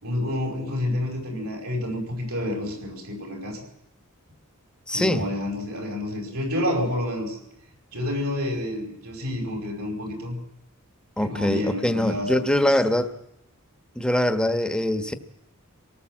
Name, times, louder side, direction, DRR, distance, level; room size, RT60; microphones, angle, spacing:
voice 1, 0.0-3.6 4.9-7.4 7.9-10.4 11.2-12.5, left 1 dB, 75° right, 5.5 m, -29 dB
voice 2, 4.9-5.2 11.2-13.1 14.0-15.1, left 1 dB, 5° left, 1.2 m, -23 dB
25.5 x 18.5 x 7.6 m
head